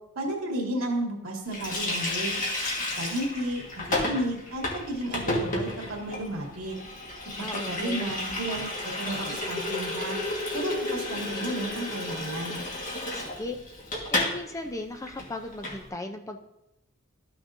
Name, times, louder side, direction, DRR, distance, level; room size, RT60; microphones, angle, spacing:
voice 1, 0.2-2.4 3.0-6.8 7.4-10.2 10.5-12.6, right 1 dB, 70° right, 0 dB, 2.0 m, -33 dB
Water tap faucet, 1.5-14.4 14.6-14.8 15.1-15.8, left 2 dB, 40° left, 1.6 m, -32 dB
voice 2, 7.4-8.1 13.1-13.6 14.1-16.4, left 2 dB, 15° left, 5 dB, 0.5 m, -36 dB
13.0 x 6.0 x 2.6 m, 0.87 s
head